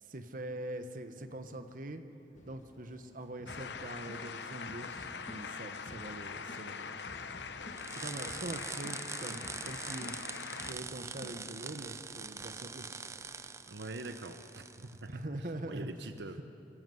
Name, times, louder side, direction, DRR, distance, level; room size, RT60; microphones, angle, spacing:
voice 1, 0.0-2.0 2.5-6.9 7.9-13.0 13.3-13.5 15.1-15.9, right 1 dB, 50° right, 8 dB, 1.1 m, -43 dB
sound 1, 2.3-14.5, equal, 45° left, 1.8 m, -54 dB
sound 2, 3.5-10.7, left 5 dB, 70° left, 0.8 m, -43 dB
sound 3, 7.8-15.0, right 5 dB, 15° right, 0.5 m, -43 dB
voice 2, 13.7-15.2 15.7-16.4, right 2 dB, 75° right, 8 dB, 0.9 m, -44 dB
24.0 x 15.0 x 7.8 m, 2.7 s
head